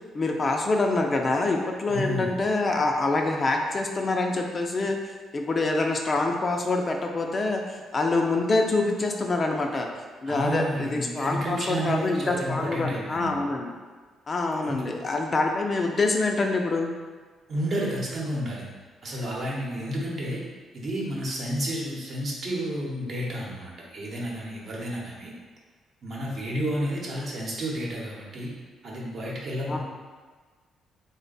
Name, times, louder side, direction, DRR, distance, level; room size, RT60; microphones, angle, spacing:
voice 1, 0.1-5.0 5.3-9.9 10.2-13.7 14.3-16.9 29.7-29.8, left 2 dB, 35° left, 2 dB, 0.4 m, -25 dB
voice 2, 1.9-2.4 10.3-13.3 14.6-14.8 17.5-18.6 19.0-20.4 20.7-25.3 26.0-28.5 28.8-29.8, equal, 55° right, -4 dB, 0.9 m, -31 dB
3.3 x 2.1 x 3.9 m, 1.4 s
cardioid pair, 90°, 0 cm